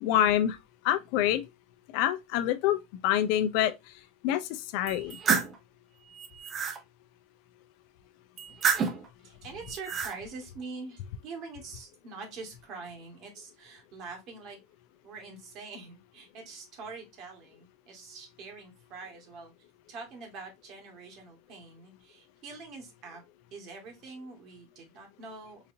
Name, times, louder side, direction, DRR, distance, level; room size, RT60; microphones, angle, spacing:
voice 1, 0.0-0.6 0.8-1.4 1.9-2.8 3.0-3.7 4.2-5.2, left 11 dB, 65° left, 0.5 m, -26 dB
sound 1, 4.9-5.6 6.1-6.8 8.4-9.1 9.7-10.2, right 6 dB, 30° right, 0.7 m, -29 dB
voice 2, 9.2-14.6 15.0-19.5 19.9-23.2 23.5-25.6, right 4 dB, 50° right, 1.7 m, -44 dB
4.0 x 2.8 x 2.7 m
supercardioid pair, 125°, 0 cm